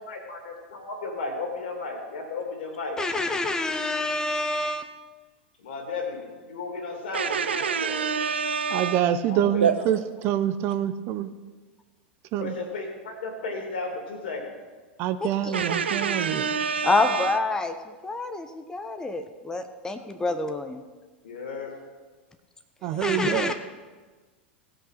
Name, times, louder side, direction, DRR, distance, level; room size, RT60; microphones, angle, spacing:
voice 1, 0.1-3.0 5.6-6.2 6.5-8.0 9.2-9.9 12.4-14.5 15.5-15.6 21.2-21.8, left 3 dB, 60° left, 2.6 m, -34 dB
voice 2, 3.0-5.0 15.2-15.5 16.8-20.8 22.9-23.5, left 2 dB, 10° left, 0.7 m, -27 dB
voice 3, 7.1-9.1 9.6-9.8 15.5-17.4, right 6 dB, 75° right, 0.7 m, -26 dB
voice 4, 8.7-10.0 10.2-11.3 12.3-12.5 15.0-16.4 22.8-23.5, right 11 dB, 40° right, 0.6 m, -26 dB
16.5 x 5.6 x 5.9 m
figure-of-eight pair, 90°, 6 cm